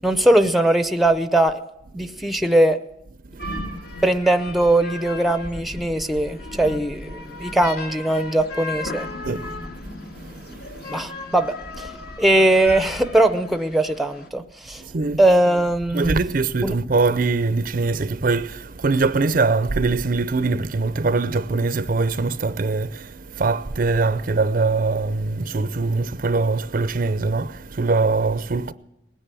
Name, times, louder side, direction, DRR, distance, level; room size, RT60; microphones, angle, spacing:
voice 1, 0.0-1.6 1.9-2.8 4.0-9.1 10.9-11.9 12.2-14.8 15.2-16.1 16.6-16.7, right 1 dB, ahead, 0.7 m, -20 dB
voice 2, 3.2-3.5 9.2-9.5 10.1-11.1 14.8-15.2 15.9-28.7, right 3 dB, 50° right, 0.5 m, -23 dB
sound 1, 3.4-14.3, left 2 dB, 60° left, 2.0 m, -35 dB
19.0 x 10.0 x 7.6 m
head